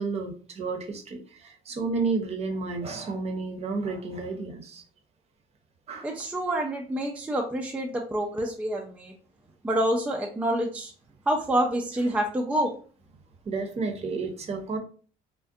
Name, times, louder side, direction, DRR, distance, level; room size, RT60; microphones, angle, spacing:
voice 1, 0.0-4.8 5.9-6.1 13.5-14.8, right 4 dB, 40° right, 4 dB, 0.6 m, -31 dB
voice 2, 6.0-9.1 9.6-10.9 11.3-12.7, right 1 dB, 10° right, 1 dB, 0.3 m, -27 dB
2.4 x 2.1 x 2.6 m, 0.41 s
cardioid pair, 110°, 17 cm